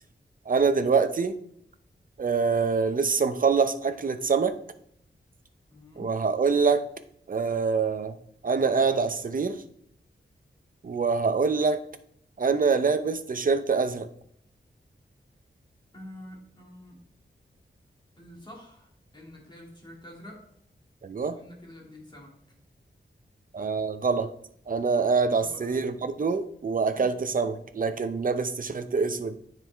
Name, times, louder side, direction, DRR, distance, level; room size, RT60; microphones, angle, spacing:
voice 1, 0.5-1.4 2.2-4.6 6.0-6.8 7.3-8.2 8.4-9.6 10.8-11.8 12.4-14.1 21.0-21.4 23.5-24.3 24.7-29.3, right 5 dB, 50° right, 10 dB, 0.6 m, -25 dB
voice 2, 5.7-6.2 15.9-17.0 18.2-20.5 21.3-22.4 25.3-25.7, left 1 dB, 25° left, -2 dB, 2.3 m, -47 dB
9.5 x 4.6 x 3.4 m, 0.67 s
wide cardioid pair, 100°, 19 cm